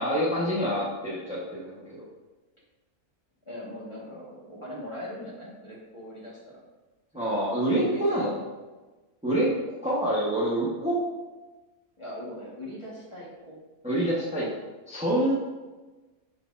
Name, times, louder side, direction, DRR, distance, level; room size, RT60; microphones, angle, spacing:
voice 1, 0.0-1.8 7.1-8.4 9.2-9.5 9.8-11.0 13.8-14.5 14.9-15.3, right 1 dB, 5° right, -7 dB, 1.1 m, -26 dB
voice 2, 3.4-6.6 7.1-7.4 7.7-8.4 12.0-13.6, left 1 dB, 20° left, -6 dB, 1.6 m, -41 dB
6.5 x 6.0 x 2.6 m, 1.2 s
omnidirectional pair, 1.5 m